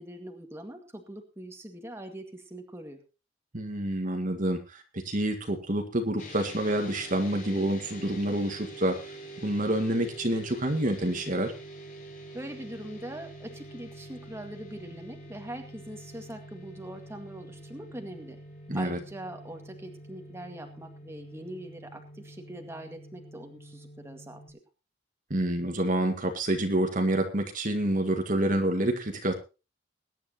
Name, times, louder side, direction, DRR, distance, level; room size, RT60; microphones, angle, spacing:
voice 1, 0.0-3.0 12.3-18.4 18.7-24.6, right 1 dB, 15° right, 3 dB, 2.0 m, -42 dB
voice 2, 3.5-11.5 18.7-19.0 25.3-29.3, right 1 dB, 45° right, 5 dB, 1.8 m, -28 dB
sound 1, 6.2-24.5, right 1 dB, 40° left, 4.6 m, -46 dB
21.5 x 10.5 x 2.9 m, 0.30 s
head